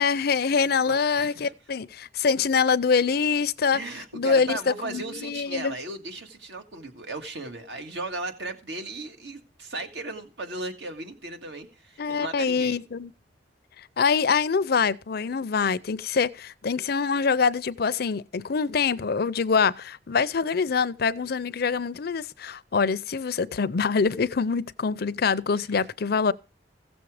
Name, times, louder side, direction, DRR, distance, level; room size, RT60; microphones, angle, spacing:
voice 1, 0.0-3.8 4.1-4.6 4.8-5.8 12.0-13.1 14.0-26.3, left 5 dB, 60° left, 0.5 m, -25 dB
voice 2, 0.9-1.5 3.7-12.8 25.7-25.8, right 2 dB, 75° right, 1.9 m, -36 dB
15.5 x 7.1 x 4.9 m
head